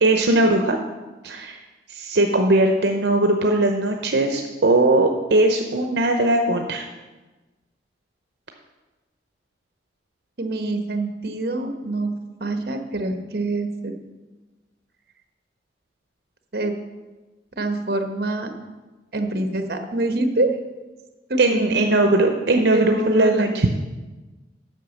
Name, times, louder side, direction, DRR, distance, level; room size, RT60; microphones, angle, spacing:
voice 1, 0.0-0.8 1.2-1.6 1.9-6.8 21.4-23.7, right 2 dB, 75° right, 4 dB, 0.7 m, -19 dB
voice 2, 10.4-12.1 12.4-13.9 16.5-16.7 17.6-18.5 19.1-20.6 21.3-21.8 22.7-23.4, right 2 dB, 55° right, 6 dB, 1.1 m, -25 dB
8.3 x 5.8 x 7.1 m, 1.2 s
head